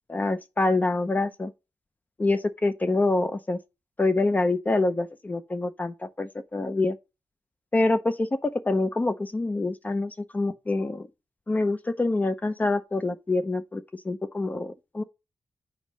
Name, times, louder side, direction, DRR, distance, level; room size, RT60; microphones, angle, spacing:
voice 1, 0.1-1.5 2.2-3.6 4.0-7.0 7.7-11.1 11.5-15.0, left 2 dB, 20° left, 0.6 m, -26 dB
6.3 x 5.1 x 5.4 m
wide cardioid pair, 145°, 7 cm